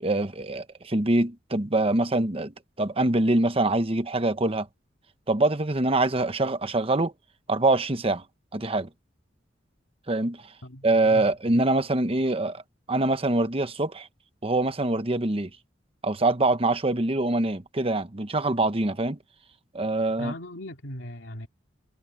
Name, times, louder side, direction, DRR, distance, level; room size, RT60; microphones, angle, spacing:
voice 1, 0.0-4.7 5.3-7.1 7.5-8.2 8.5-8.9 10.1-10.4 10.8-12.6 12.9-14.1 14.4-15.5 16.0-19.2 19.7-20.3, right 2 dB, 30° right, 1.0 m, -24 dB
voice 2, 10.6-11.3 20.2-21.5, left 1 dB, 80° left, 2.5 m, -38 dB
head